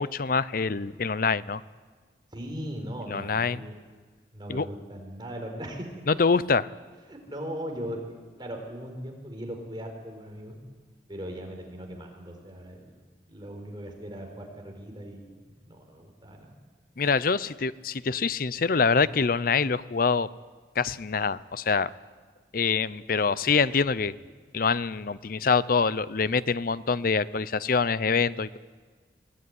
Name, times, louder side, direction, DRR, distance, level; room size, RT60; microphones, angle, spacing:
voice 1, 0.0-1.6 3.1-3.6 4.5-4.7 6.1-6.7 17.0-20.3 20.8-21.9 22.5-24.1 24.5-28.6, left 5 dB, 55° left, 17 dB, 0.6 m, -25 dB
voice 2, 2.3-3.8 4.3-5.9 7.1-10.6 11.1-13.0 13.3-16.5, equal, 25° right, 2 dB, 4.6 m, -39 dB
23.5 x 17.0 x 9.6 m, 1.5 s
head